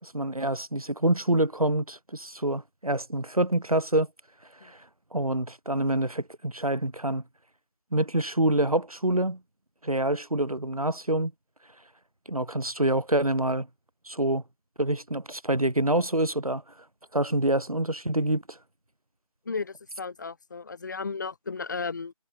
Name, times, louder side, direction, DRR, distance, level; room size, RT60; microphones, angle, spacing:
voice 1, 0.0-4.1 4.6-4.8 5.1-7.2 7.9-9.4 9.8-11.3 12.3-13.7 14.1-14.4 14.8-16.6 17.1-18.6, right 1 dB, 75° right, 6.0 m, -26 dB
voice 2, 19.5-22.1, left 4 dB, 30° left, 6.3 m, -34 dB
figure-of-eight pair, 165°, 19 cm